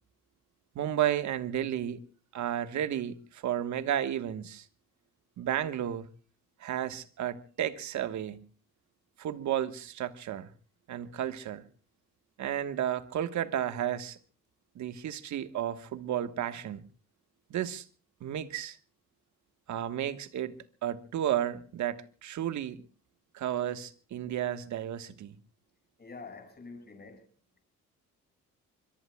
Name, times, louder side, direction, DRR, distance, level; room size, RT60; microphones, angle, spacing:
voice 1, 0.7-2.0 2.3-4.6 5.4-6.1 6.6-8.4 9.2-10.5 10.9-11.6 12.4-14.2 14.7-16.8 17.5-17.9 18.2-18.8 19.7-22.8 23.3-25.3, right 11 dB, 70° right, 1.4 m, -32 dB
voice 2, 26.0-27.3, left 4 dB, 30° left, 5.9 m, -46 dB
24.5 x 22.5 x 2.3 m
cardioid pair, 90°, 30 cm